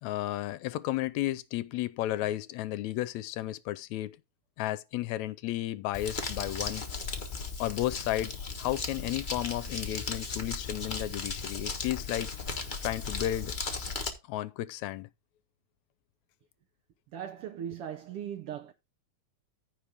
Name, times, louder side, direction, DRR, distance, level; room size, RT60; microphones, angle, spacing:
voice 1, 0.0-4.2 4.6-6.8 7.6-12.3 12.8-13.6 14.3-15.1, left 14 dB, 80° left, 1.9 m, -33 dB
Crumpling crinkling, 5.9-14.1, left 4 dB, 50° left, 0.5 m, -36 dB
voice 2, 17.1-18.7, right 9 dB, 70° right, 1.4 m, -38 dB
15.0 x 5.0 x 3.4 m
omnidirectional pair, 3.3 m